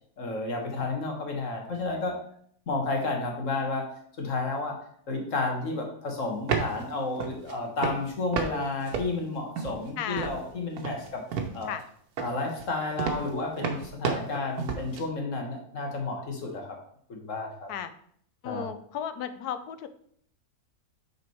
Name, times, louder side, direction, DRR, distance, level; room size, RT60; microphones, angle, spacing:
voice 1, 0.2-2.2 2.7-3.9 4.2-4.7 5.1-11.2 11.5-11.7 12.2-16.8 17.1-17.7 18.4-18.7, left 3 dB, 55° left, 2 dB, 1.9 m, -31 dB
sound 1, 6.3-6.8 7.2-7.5 7.8-8.5 8.8-9.9 10.2-10.5 10.8-11.8 12.2-15.0, right 6 dB, 80° right, 1.5 m, -31 dB
voice 2, 10.0-10.3 11.7-11.8 17.7-17.9 18.4-19.9, left 9 dB, 85° left, 11 dB, 1.2 m, -34 dB
6.4 x 5.5 x 4.6 m, 0.64 s
omnidirectional pair, 1.6 m